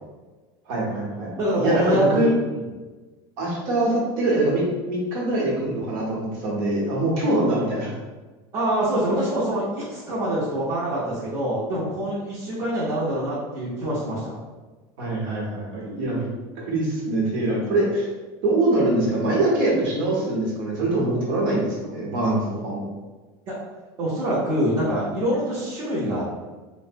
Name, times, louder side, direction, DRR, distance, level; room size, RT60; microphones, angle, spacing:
voice 1, 0.7-2.3 3.4-7.9 15.0-16.3 16.6-18.1 18.4-22.8, right 2 dB, 70° right, -4 dB, 1.0 m, -23 dB
voice 2, 1.4-2.7 8.5-14.3 23.5-23.6 24.0-26.3, right 1 dB, 40° right, -8 dB, 0.7 m, -25 dB
2.6 x 2.1 x 2.6 m, 1.3 s
supercardioid pair, 140°, 13 cm